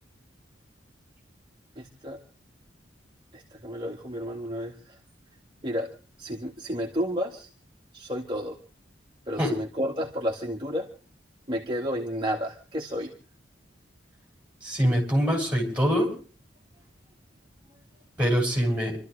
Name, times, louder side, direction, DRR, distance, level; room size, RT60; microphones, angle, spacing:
voice 1, 1.8-2.2 3.3-5.0 5.6-5.9 6.2-7.5 7.9-8.6 9.3-10.9 11.5-13.1, equal, 25° right, 0 dB, 1.9 m, -31 dB
voice 2, 14.6-16.1 18.2-19.0, equal, 5° right, 0 dB, 7.1 m, -24 dB
28.5 x 13.0 x 3.3 m, 0.37 s
head